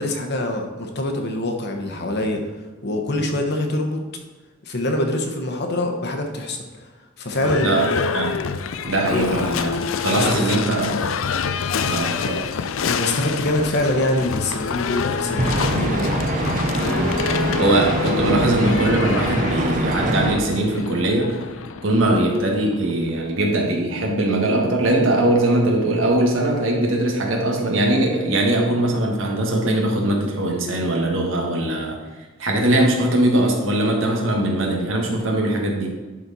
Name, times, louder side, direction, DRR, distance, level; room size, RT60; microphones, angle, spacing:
voice 1, 0.0-2.4 2.8-4.0 4.6-6.9 7.2-8.1 9.1-9.3 10.1-10.5 12.8-16.2, left 1 dB, 55° left, 4 dB, 1.1 m, -24 dB
Livestock farm animals working animals / Bell, 7.3-23.2, left 6 dB, 90° left, 0.5 m, -27 dB
voice 2, 8.8-9.8 10.0-11.0 11.9-12.4 16.9-21.4 21.8-32.0 32.4-35.9, right 1 dB, 75° right, 0 dB, 1.6 m, -21 dB
sound 1, 15.4-20.4, right 1 dB, 40° right, 0.8 m, -23 dB
11.0 x 4.4 x 4.1 m, 1.3 s
head